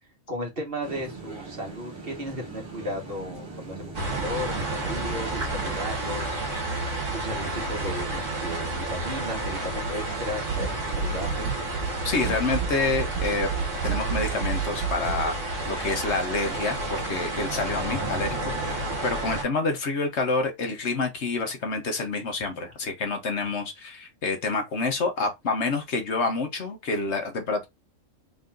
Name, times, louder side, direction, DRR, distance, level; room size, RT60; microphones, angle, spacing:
voice 1, 0.3-6.8 7.1-11.5, equal, 45° right, 1.7 m, -35 dB
sound 1, 0.8-6.0, right 3 dB, 20° right, 1.7 m, -41 dB
sound 2, 3.9-19.4, right 2 dB, 65° right, 1.8 m, -31 dB
sound 3, 10.4-15.3, right 6 dB, 85° right, 1.1 m, -31 dB
voice 2, 12.0-13.5 13.8-27.7, left 3 dB, 60° left, 1.2 m, -28 dB
4.0 x 3.8 x 2.5 m
omnidirectional pair, 1.3 m